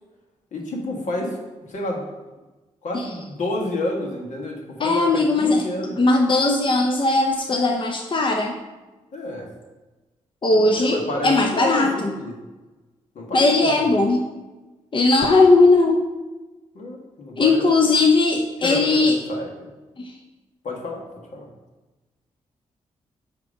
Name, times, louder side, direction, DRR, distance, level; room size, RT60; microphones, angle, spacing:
voice 1, 0.5-1.4 1.7-2.0 2.8-6.0 9.1-9.5 10.5-11.9 12.2-12.3 13.1-13.8 16.7-17.6 18.6-18.8 19.1-19.7 20.6-21.0 21.3-21.5, left 1 dB, 65° left, -1 dB, 1.5 m, -29 dB
voice 2, 4.8-5.6 6.0-8.6 10.4-12.1 13.3-14.3 14.9-16.0 17.4-19.2 20.0-20.1, left 3 dB, 40° left, 2 dB, 0.8 m, -18 dB
8.2 x 3.0 x 5.0 m, 1.2 s
supercardioid pair, 40°, 13 cm